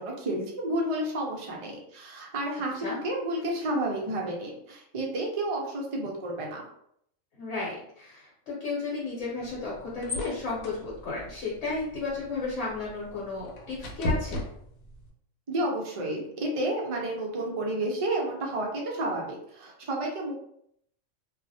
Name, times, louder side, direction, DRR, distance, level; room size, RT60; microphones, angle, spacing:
voice 1, 0.0-6.6 15.5-20.3, right 1 dB, 60° right, -1 dB, 0.3 m, -31 dB
voice 2, 7.3-14.4, left 3 dB, 70° left, -6 dB, 1.1 m, -33 dB
sound 1, 9.4-15.1, left 2 dB, 85° left, 1.0 m, -37 dB
2.3 x 2.0 x 2.6 m, 0.70 s
omnidirectional pair, 1.4 m